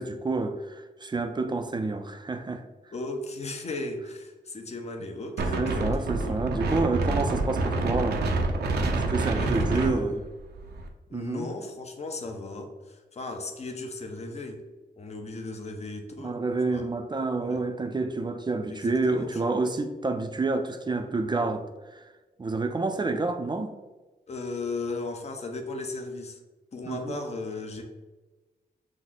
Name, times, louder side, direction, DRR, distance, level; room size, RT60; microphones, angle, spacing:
voice 1, 0.0-2.6 5.6-8.2 8.8-10.2 11.1-11.5 16.2-21.7 21.9-22.0 22.4-23.7 26.9-27.2, right 3 dB, 25° right, 0.4 m, -29 dB
voice 2, 2.9-6.3 9.3-10.2 11.1-14.6 15.0-16.4 16.7-16.8 17.4-17.6 18.7-19.4 24.3-26.4 26.7-27.8, left 2 dB, 40° left, 0.8 m, -36 dB
Wind, 5.4-10.9, right 2 dB, 80° right, 0.6 m, -27 dB
6.1 x 2.1 x 3.8 m
cardioid pair, 75°, 17 cm